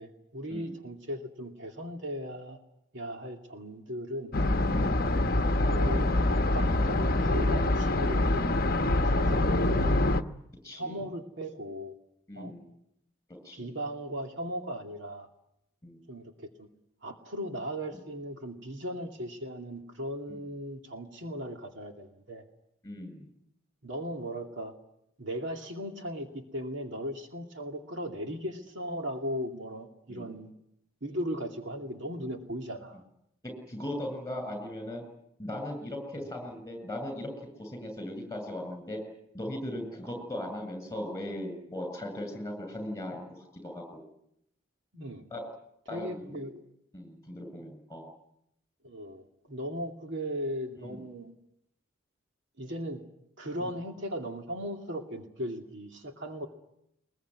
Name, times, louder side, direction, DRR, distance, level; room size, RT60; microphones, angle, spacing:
voice 1, 0.0-2.6 2.9-4.3 5.4-8.7 9.1-10.0 10.7-11.9 12.3-12.5 13.5-15.3 16.1-16.7 17.0-22.4 23.8-24.7 25.2-30.5 31.0-33.0 44.9-45.2 45.9-46.6 48.8-51.3 52.6-53.0 53.4-56.5, equal, 60° right, 3 dB, 2.5 m, -37 dB
sound 1, 4.3-10.2, left 2 dB, 45° left, 1.1 m, -25 dB
voice 2, 4.8-5.2 10.6-11.1 12.3-12.7 13.4-13.7 15.8-16.0 20.3-20.4 22.8-23.3 30.1-30.3 33.4-35.0 35.4-39.0 39.3-44.0 45.3-45.5 45.9-46.4 46.9-48.1 50.8-51.0 53.6-53.7, left 1 dB, 15° left, 6 dB, 7.7 m, -38 dB
22.0 x 22.0 x 9.5 m, 0.79 s
head